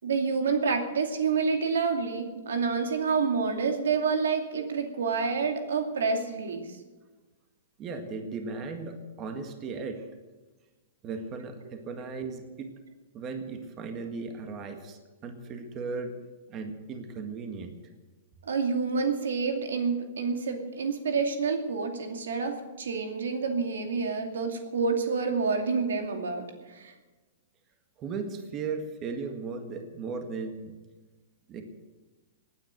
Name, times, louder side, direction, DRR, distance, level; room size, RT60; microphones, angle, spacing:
voice 1, 0.0-6.7 18.4-26.9, right 5 dB, 90° right, 5 dB, 2.5 m, -28 dB
voice 2, 7.8-10.1 11.0-12.8 13.1-16.1 16.5-17.8 28.0-30.7 31.5-31.6, right 4 dB, 25° right, 5 dB, 1.8 m, -36 dB
18.5 x 9.4 x 7.9 m, 1.2 s
hypercardioid pair, 145°, 0 cm